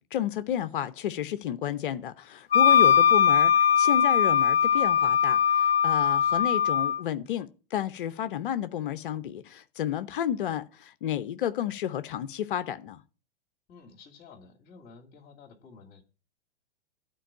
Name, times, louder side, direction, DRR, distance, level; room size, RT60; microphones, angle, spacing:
voice 1, 0.0-13.0, left 10 dB, 60° left, 0.9 m, -31 dB
Wind instrument woodwind instrument, 2.5-7.0, left 8 dB, 80° left, 0.5 m, -21 dB
voice 2, 13.7-16.0, left 5 dB, 35° left, 2.6 m, -52 dB
12.5 x 4.7 x 8.7 m
figure-of-eight pair, 100°, 30 cm